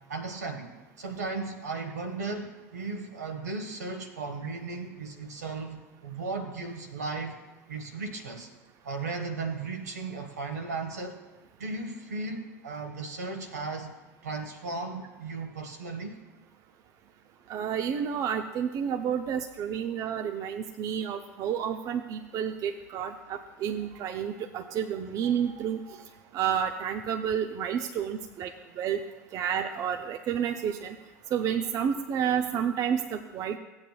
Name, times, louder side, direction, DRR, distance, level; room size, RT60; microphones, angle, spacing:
voice 1, 0.1-7.4 7.7-8.5 8.8-11.2 11.6-13.9 14.2-16.2, right 3 dB, 80° right, 4 dB, 1.3 m, -36 dB
voice 2, 17.5-26.0 26.3-29.0 29.3-31.0 31.3-33.6, right 8 dB, 40° right, 6 dB, 0.6 m, -30 dB
15.0 x 8.7 x 2.3 m, 1.1 s
hypercardioid pair, 80°, 9 cm